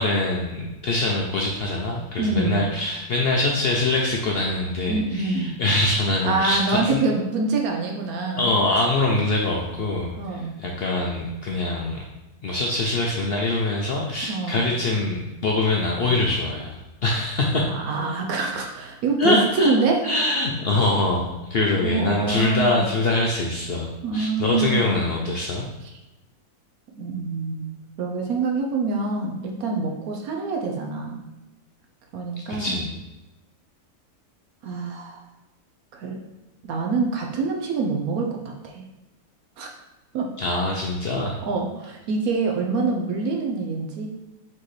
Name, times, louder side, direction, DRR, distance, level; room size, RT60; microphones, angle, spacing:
voice 1, 0.0-7.0 8.4-12.0 12.4-17.7 19.2-19.7 20.0-25.7 32.5-33.0 40.4-41.4, left 2 dB, 75° left, -1 dB, 0.5 m, -24 dB
voice 2, 2.2-2.6 4.9-5.5 6.2-8.5 10.2-10.5 14.3-14.6 17.7-20.0 21.8-22.8 24.0-25.0 25.8-25.9 27.0-27.7 28.0-31.2 32.1-32.8 34.6-35.2 35.9-36.2 36.6-38.4 38.6-38.8 39.6-39.7 40.1-40.3 41.4-44.1, right 3 dB, 75° right, 1 dB, 1.1 m, -25 dB
4.3 x 3.7 x 3.1 m, 1.0 s
omnidirectional pair, 1.6 m